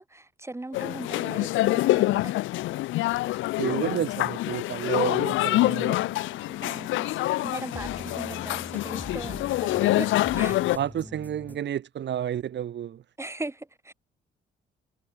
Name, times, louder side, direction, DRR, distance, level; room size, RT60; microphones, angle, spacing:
voice 1, 0.0-2.3 6.6-10.6 13.2-13.9, right 2 dB, 15° right, 6.1 m, -39 dB
sound 1, 0.7-10.8, left 17 dB, 75° left, 0.4 m, -26 dB
voice 2, 3.6-6.0 10.3-13.0, right 10 dB, 65° right, 2.5 m, -31 dB
sound 2, 7.7-11.6, left 1 dB, 10° left, 5.4 m, -44 dB
cardioid pair, 90°, 20 cm